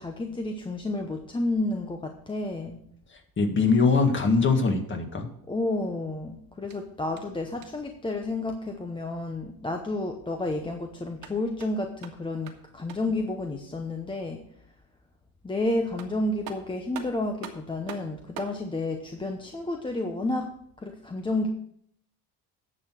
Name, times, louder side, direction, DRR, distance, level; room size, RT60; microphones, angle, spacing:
voice 1, 0.0-2.8 5.5-14.4 15.4-20.5 20.8-21.5, left 2 dB, 15° left, 4 dB, 0.8 m, -31 dB
voice 2, 3.1-5.3, left 4 dB, 30° left, 4 dB, 1.8 m, -22 dB
sound 1, 6.7-8.0 11.0-13.2 15.5-15.6 16.0-18.6, right 8 dB, 60° right, 1.7 m, -45 dB
10.0 x 6.5 x 6.1 m, 0.69 s
cardioid pair, 130°, 38 cm